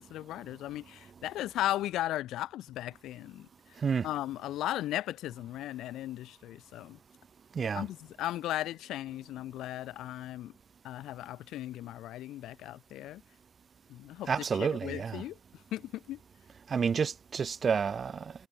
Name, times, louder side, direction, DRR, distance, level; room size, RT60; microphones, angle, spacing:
voice 1, 0.0-3.5 4.0-7.0 7.7-10.5 10.8-13.2 13.9-14.3 14.6-15.4 15.7-16.2, left 14 dB, 65° left, 0.8 m, -36 dB
voice 2, 7.6-7.9 14.3-15.2 16.7-18.3, right 6 dB, 40° right, 0.4 m, -30 dB
hypercardioid pair, 50°, 0 cm